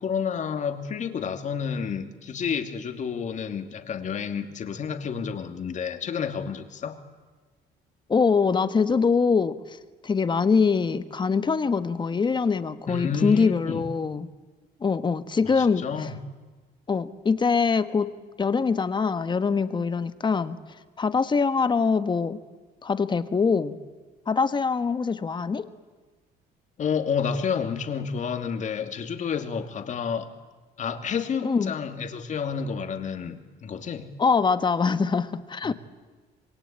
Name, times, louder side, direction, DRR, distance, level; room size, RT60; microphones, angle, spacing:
voice 1, 0.0-7.0 12.9-13.8 15.6-16.1 26.8-30.3 30.8-34.1 35.6-35.7, left 6 dB, 45° left, 7 dB, 2.6 m, -30 dB
voice 2, 8.1-9.8 10.0-14.3 14.8-16.1 16.9-18.1 18.4-20.6 21.0-22.4 22.8-23.8 24.3-25.7 31.4-31.7 34.2-35.7, left 5 dB, 25° left, 12 dB, 1.4 m, -23 dB
27.0 x 22.0 x 8.9 m, 1.3 s
cardioid pair, 110°, 17 cm